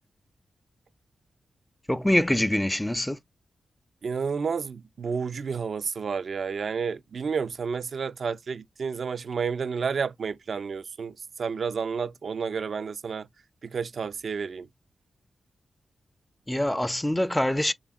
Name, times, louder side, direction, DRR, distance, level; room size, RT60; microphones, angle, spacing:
voice 1, 1.9-3.2 16.5-17.7, left 1 dB, 10° left, 0.4 m, -24 dB
voice 2, 4.0-13.3 13.6-14.7, right 5 dB, 65° right, 0.4 m, -31 dB
3.7 x 3.4 x 2.4 m
supercardioid pair, 40°, 0 cm